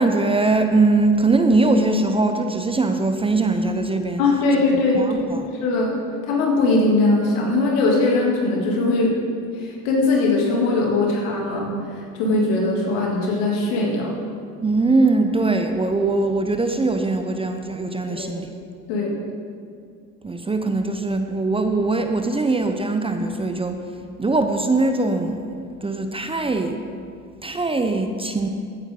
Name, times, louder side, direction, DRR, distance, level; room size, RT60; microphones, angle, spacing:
voice 1, 0.0-4.2 4.9-5.5 14.6-18.5 20.2-23.8 24.2-26.8 27.4-28.5, right 3 dB, 15° right, 6 dB, 0.8 m, -21 dB
voice 2, 4.2-5.3 5.6-6.0 6.3-9.1 9.6-11.7 12.1-14.1 18.1-18.3 18.9-19.2, left 2 dB, 75° left, -2 dB, 3.0 m, -20 dB
15.5 x 9.1 x 3.9 m, 2.3 s
supercardioid pair, 85°, 39 cm